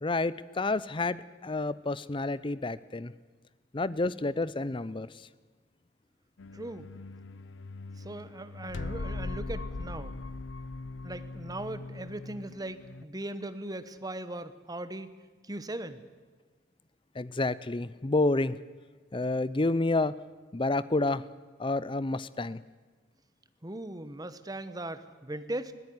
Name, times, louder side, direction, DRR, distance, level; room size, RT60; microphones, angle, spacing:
voice 1, 0.0-3.1 3.7-5.1 17.2-18.6 19.1-20.1 20.5-21.2 21.6-22.6, left 2 dB, 25° left, 17 dB, 0.6 m, -29 dB
sound 1, 6.4-13.0, left 3 dB, 75° left, 0.7 m, -40 dB
voice 2, 6.5-6.9 8.0-10.1 11.0-15.1 15.4-16.0 23.6-25.7, right 1 dB, 20° right, 12 dB, 1.1 m, -39 dB
20.5 x 16.5 x 9.6 m, 1.4 s
head